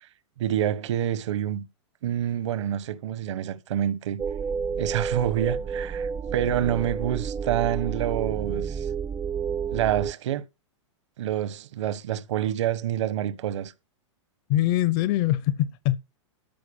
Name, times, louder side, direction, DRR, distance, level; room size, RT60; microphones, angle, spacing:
voice 1, 0.4-1.7 2.0-4.2 4.8-8.9 9.7-10.4 11.2-13.7, right 11 dB, 70° right, 1.4 m, -27 dB
sound 1, 4.2-10.1, right 6 dB, 15° right, 0.6 m, -30 dB
voice 2, 14.5-16.0, left 14 dB, 45° left, 0.7 m, -23 dB
13.0 x 4.8 x 7.2 m
hypercardioid pair, 120°, 16 cm